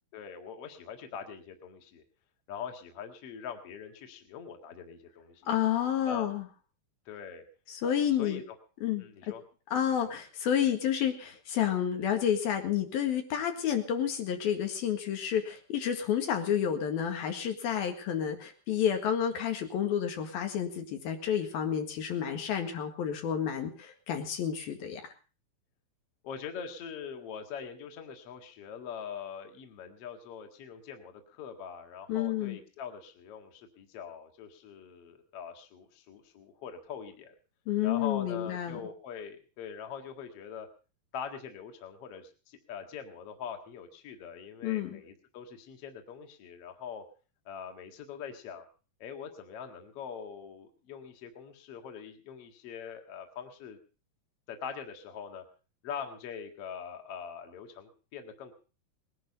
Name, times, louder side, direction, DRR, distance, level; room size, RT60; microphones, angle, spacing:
voice 1, 0.1-2.0 2.5-5.5 6.1-6.3 7.1-7.4 7.8-8.4 9.0-9.4 10.0-10.1 26.2-37.3 37.8-40.7 41.1-47.0 47.5-48.7 49.0-53.8 54.5-55.4 55.8-58.5, left 7 dB, 45° left, 5 dB, 2.4 m, -43 dB
voice 2, 5.5-6.5 7.7-8.4 8.8-9.1 9.7-25.0 32.1-32.6 37.7-38.8 44.6-45.0, left 9 dB, 75° left, 5 dB, 3.7 m, -30 dB
20.0 x 11.0 x 5.5 m, 0.36 s
omnidirectional pair, 4.3 m